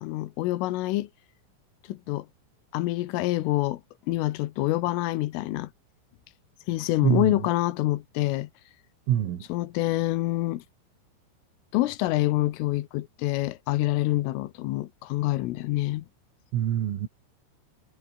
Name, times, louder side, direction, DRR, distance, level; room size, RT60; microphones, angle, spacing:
voice 1, 0.0-1.1 1.9-2.3 2.7-3.8 4.1-5.7 6.7-8.5 9.5-10.6 11.7-16.1, left 17 dB, 85° left, 3.7 m, -26 dB
voice 2, 7.0-7.4 9.1-9.4 16.5-17.1, right 11 dB, 90° right, 5.1 m, -25 dB
omnidirectional pair, 5.7 m